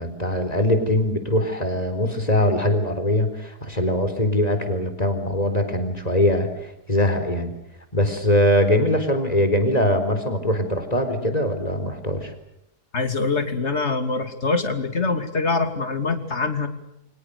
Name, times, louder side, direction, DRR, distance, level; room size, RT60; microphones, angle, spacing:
voice 1, 0.0-6.5 6.9-7.5 7.9-12.3, left 1 dB, 25° left, 8 dB, 4.3 m, -22 dB
voice 2, 12.9-16.7, left 3 dB, 40° left, 8 dB, 3.0 m, -24 dB
29.5 x 25.5 x 6.7 m, 0.81 s
omnidirectional pair, 1.7 m